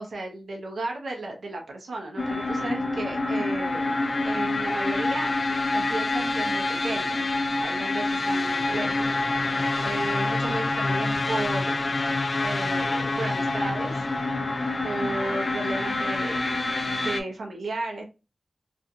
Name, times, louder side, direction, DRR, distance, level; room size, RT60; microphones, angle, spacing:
voice 1, 0.0-5.3 5.7-7.3 7.6-9.1 9.8-11.8 12.4-13.9 14.8-16.6 17.0-18.0, right 2 dB, 75° right, 1 dB, 0.7 m, -34 dB
sound 1, 2.2-17.2, left 2 dB, 50° left, 0.4 m, -26 dB
2.6 x 2.4 x 2.6 m, 0.29 s
wide cardioid pair, 70°, 0 cm